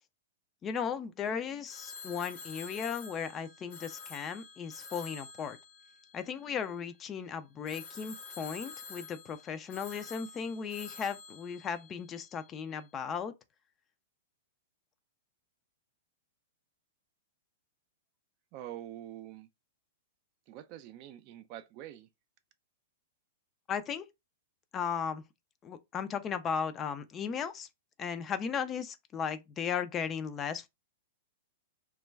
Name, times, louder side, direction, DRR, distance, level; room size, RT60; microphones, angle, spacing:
voice 1, 0.6-5.6 6.1-13.3 23.7-24.1 24.7-25.2 25.6-27.7 28.0-30.7, left 7 dB, 25° left, 0.4 m, -36 dB
Telephone, 1.7-6.9 7.7-12.5, left 5 dB, 50° left, 0.8 m, -48 dB
voice 2, 18.5-19.5 20.5-22.1, right 12 dB, 45° right, 0.4 m, -45 dB
2.3 x 2.2 x 3.2 m
hypercardioid pair, 110°, 0 cm